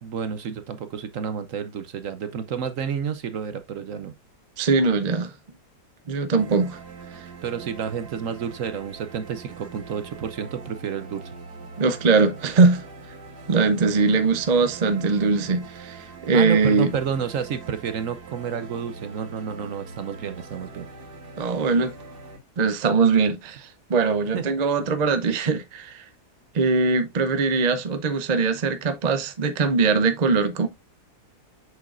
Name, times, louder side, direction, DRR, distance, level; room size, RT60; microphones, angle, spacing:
voice 1, 0.0-4.1 7.4-11.4 16.3-20.9 24.3-24.4, right 7 dB, 60° right, 1.0 m, -30 dB
voice 2, 4.6-5.3 6.1-6.8 11.8-12.8 13.5-16.9 21.4-21.9 22.6-26.0 26.5-30.7, right 4 dB, 40° right, 0.6 m, -21 dB
sound 1, 6.4-22.4, right 4 dB, 85° right, 3.0 m, -42 dB
7.2 x 6.2 x 2.5 m
omnidirectional pair, 1.7 m